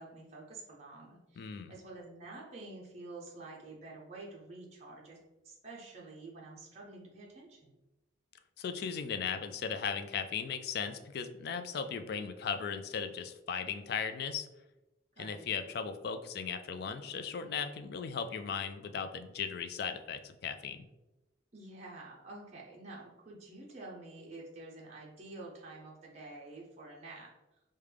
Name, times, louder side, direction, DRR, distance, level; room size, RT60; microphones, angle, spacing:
voice 1, 0.0-5.2 5.4-7.7 15.2-15.5 21.5-27.3, right 2 dB, 35° right, -3 dB, 0.7 m, -49 dB
voice 2, 1.4-1.7 8.6-14.5 15.2-20.8, left 6 dB, 55° left, 8 dB, 0.3 m, -37 dB
4.8 x 2.2 x 3.3 m, 1.0 s
head